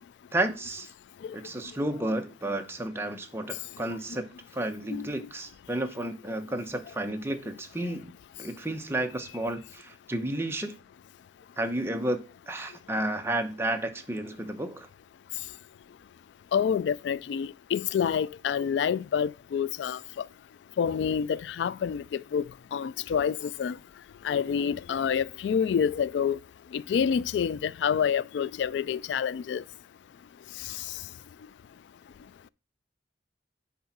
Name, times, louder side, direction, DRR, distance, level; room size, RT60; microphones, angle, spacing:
voice 1, 0.3-0.9 1.3-4.2 4.5-8.1 8.4-10.7 11.6-12.2 12.5-14.9, right 1 dB, 15° right, 0.9 m, -32 dB
voice 2, 4.9-5.3 16.5-20.0 20.8-22.4 22.7-23.7 24.2-26.4 26.7-29.6, left 7 dB, 75° left, 0.3 m, -27 dB
10.0 x 3.9 x 5.9 m
head